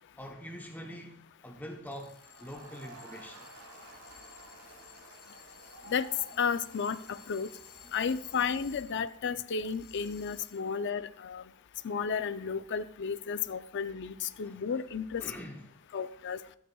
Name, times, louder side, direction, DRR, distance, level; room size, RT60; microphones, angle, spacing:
voice 1, 0.2-3.5 14.4-14.6 15.2-15.8, equal, 10° left, 1 dB, 0.9 m, -44 dB
sound 1, 1.9-9.2 9.6-10.8, left 9 dB, 75° left, 1.0 m, -56 dB
Crowd, 2.2-9.2, right 2 dB, 65° right, 3.0 m, -53 dB
voice 2, 6.4-7.5 7.9-11.4 11.8-15.2 15.9-16.4, left 6 dB, 55° left, 13 dB, 0.5 m, -33 dB
12.5 x 12.0 x 2.3 m, 0.70 s
head